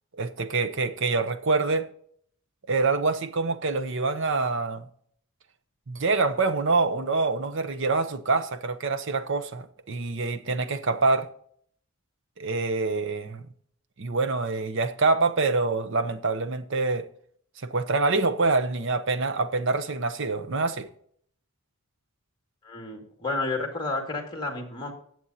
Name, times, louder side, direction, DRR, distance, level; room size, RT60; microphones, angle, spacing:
voice 1, 0.2-1.9 2.7-4.9 5.9-11.3 12.4-13.4 14.0-17.1 17.6-20.9, right 3 dB, 55° right, 0.8 m, -26 dB
voice 2, 22.6-24.9, left 3 dB, 20° left, 2.1 m, -31 dB
18.5 x 7.7 x 2.8 m
head